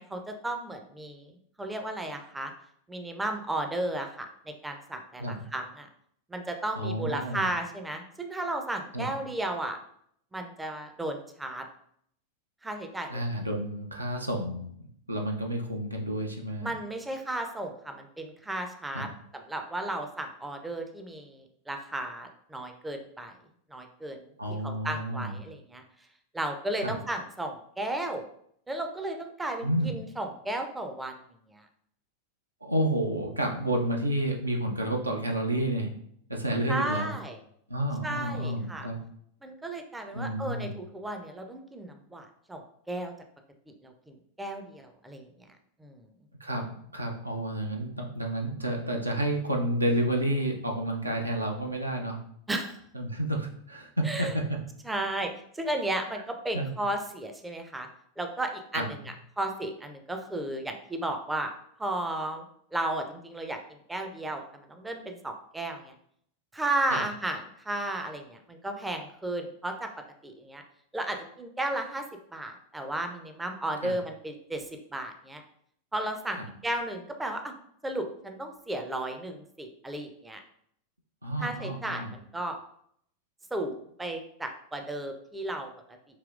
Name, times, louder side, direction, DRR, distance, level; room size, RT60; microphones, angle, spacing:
voice 1, 0.0-1.3 1.6-2.5 2.9-5.9 6.3-9.8 10.3-11.7 12.6-13.2 16.6-23.3 23.7-25.8 26.3-28.2 28.7-31.2 31.5-31.7 36.7-37.4 38.0-38.9 39.4-43.1 43.8-45.3 45.8-46.1 52.5-52.8 54.0-54.3 54.8-57.9 58.2-59.0 59.4-61.5 61.8-62.4 62.7-65.9 66.5-69.9 70.2-70.6 70.9-72.1 72.3-75.4 75.9-77.5 77.8-80.4 81.4-82.6 83.5-85.7, right 1 dB, 10° right, 5 dB, 0.4 m, -34 dB
voice 2, 6.8-7.5 8.9-9.1 13.1-14.7 15.1-16.7 18.9-19.1 24.4-25.4 26.8-27.0 29.6-29.9 32.6-35.9 36.3-37.1 37.7-39.0 40.1-40.8 46.4-46.7 46.9-52.2 52.9-54.6 56.5-56.7 58.7-58.9 66.9-67.0 73.8-73.9 76.4-76.5 81.2-82.1, right 1 dB, 85° right, 1 dB, 0.6 m, -30 dB
4.9 x 2.9 x 2.4 m, 0.68 s
figure-of-eight pair, 90°, 0 cm